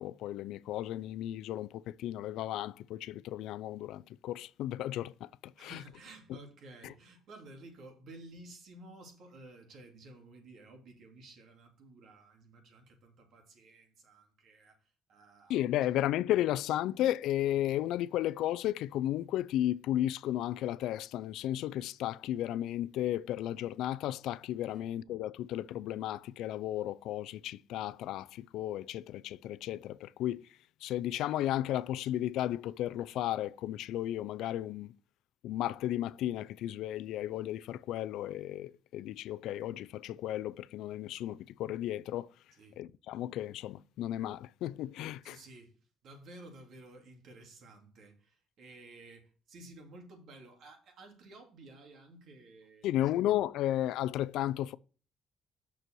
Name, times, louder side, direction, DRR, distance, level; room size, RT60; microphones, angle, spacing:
voice 1, 0.0-5.8 6.8-6.9 15.5-30.4 30.8-34.9 35.4-42.3 42.8-45.4 52.8-54.8, left 13 dB, 90° left, 0.3 m, -34 dB
voice 2, 5.6-15.9 16.3-16.5 24.7-24.9 42.5-42.8 45.2-45.7 46.0-53.2, right 2 dB, 70° right, 2.6 m, -53 dB
6.7 x 6.2 x 4.5 m
cardioid pair, 90°, 0 cm